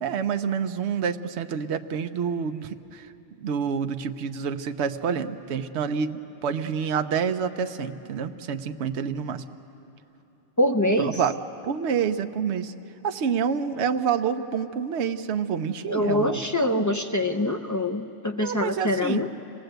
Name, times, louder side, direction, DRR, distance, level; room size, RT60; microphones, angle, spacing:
voice 1, 0.0-3.1 3.4-9.4 11.0-11.3 11.6-12.7 13.0-16.4 16.7-16.8 18.4-19.3, right 7 dB, 65° right, 8 dB, 1.0 m, -28 dB
voice 2, 10.6-11.2 15.9-19.3, left 1 dB, 25° left, 6 dB, 0.4 m, -24 dB
26.5 x 19.0 x 7.9 m, 3.0 s
omnidirectional pair, 1.3 m